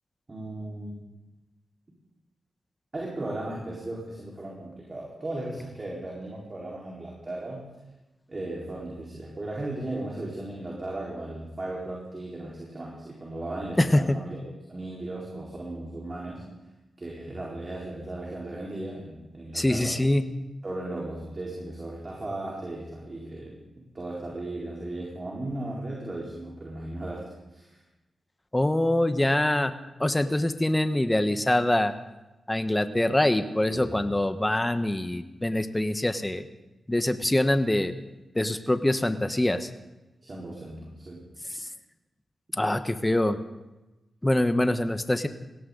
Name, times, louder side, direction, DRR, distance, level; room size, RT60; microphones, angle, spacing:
voice 1, 0.3-1.1 2.9-7.7 8.3-14.4 14.7-16.4 17.0-19.9 20.6-27.2 27.5-27.8 33.7-33.9 40.2-41.2, right 2 dB, 40° right, -4 dB, 4.5 m, -36 dB
voice 2, 13.8-14.2 19.5-20.2 28.5-29.7 30.0-31.9 32.5-36.4 36.9-37.9 38.3-39.7 41.5-41.7 42.5-43.4 44.2-45.3, left 1 dB, 15° left, 9 dB, 1.2 m, -24 dB
20.0 x 17.0 x 4.0 m, 1.1 s
cardioid pair, 60°, 0 cm